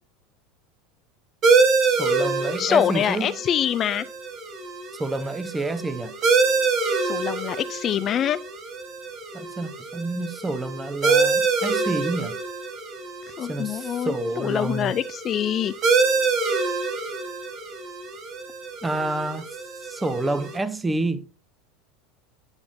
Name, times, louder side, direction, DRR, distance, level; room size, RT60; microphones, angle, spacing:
sound 1, 1.4-20.6, right 4 dB, 45° right, 1.6 m, -26 dB
voice 1, 1.8-3.3 5.0-6.1 9.3-12.4 13.5-14.9 18.8-19.4 19.8-21.3, right 2 dB, 15° right, 0.7 m, -28 dB
voice 2, 2.6-4.1 7.0-8.4 13.4-15.7, left 10 dB, 40° left, 0.3 m, -25 dB
9.6 x 5.7 x 2.6 m
hypercardioid pair, 85°, 0 cm